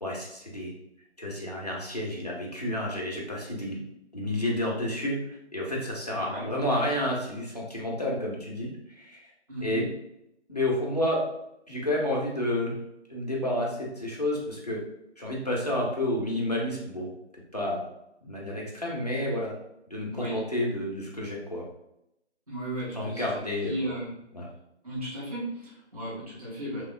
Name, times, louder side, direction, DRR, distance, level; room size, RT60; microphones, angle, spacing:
voice 1, 0.0-0.7 1.2-3.8 4.1-9.2 9.6-9.8 10.5-11.2 11.7-12.7 13.1-14.8 15.2-17.1 17.5-17.8 18.2-19.6 19.9-21.6 22.9-23.9 24.3-24.5, left 1 dB, 35° left, -4 dB, 0.5 m, -30 dB
voice 2, 6.1-6.5 9.5-9.8 20.1-20.4 22.5-24.1 24.8-26.8, right 1 dB, 30° right, -9 dB, 0.8 m, -35 dB
3.0 x 2.1 x 2.5 m, 0.83 s
figure-of-eight pair, 160°, 35 cm